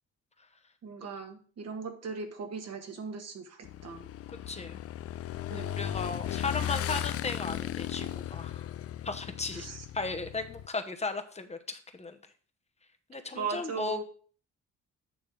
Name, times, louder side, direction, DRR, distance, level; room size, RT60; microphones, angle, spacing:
voice 1, 0.8-4.0 5.5-5.7 9.5-9.8 13.3-14.0, right 4 dB, 55° right, 5 dB, 1.6 m, -38 dB
Motorcycle / Engine, 3.7-10.7, left 11 dB, 50° left, 0.4 m, -36 dB
voice 2, 4.5-4.8 5.5-8.7 9.0-9.7 9.9-12.2 13.1-14.0, left 3 dB, 20° left, 8 dB, 1.0 m, -36 dB
8.9 x 3.4 x 6.0 m, 0.44 s
cardioid pair, 90°, 30 cm